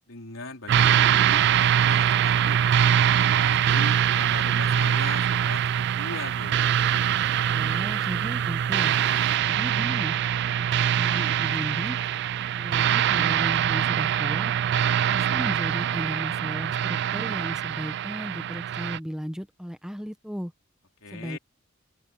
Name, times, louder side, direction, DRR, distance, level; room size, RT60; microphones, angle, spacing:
voice 1, 0.1-2.6 3.3-6.6 21.0-21.4, left 3 dB, 90° left, 3.9 m, -39 dB
sound 1, 0.7-19.0, right 9 dB, 60° right, 0.3 m, -23 dB
voice 2, 7.5-8.9 9.4-10.2 10.6-12.0 12.5-14.5 15.1-20.5 21.1-21.4, equal, 5° right, 1.1 m, -35 dB
head